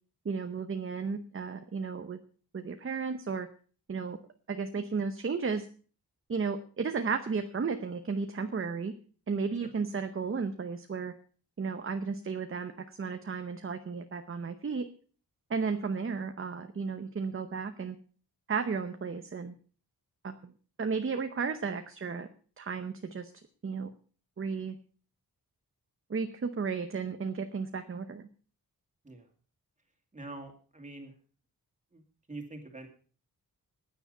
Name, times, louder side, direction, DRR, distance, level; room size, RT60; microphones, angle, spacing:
voice 1, 0.2-2.2 2.5-3.5 3.9-4.2 4.5-5.7 6.3-8.9 9.3-11.1 11.6-14.9 15.5-18.0 18.5-19.5 20.2-20.5 20.8-22.3 22.6-23.3 23.6-23.9 24.4-24.7 26.1-28.3, right 5 dB, 35° right, 8 dB, 0.8 m, -34 dB
voice 2, 30.1-31.1 31.9-32.0 32.3-32.9, right 2 dB, 20° right, 4 dB, 2.5 m, -44 dB
15.5 x 9.9 x 5.5 m, 0.41 s
wide cardioid pair, 175°, 38 cm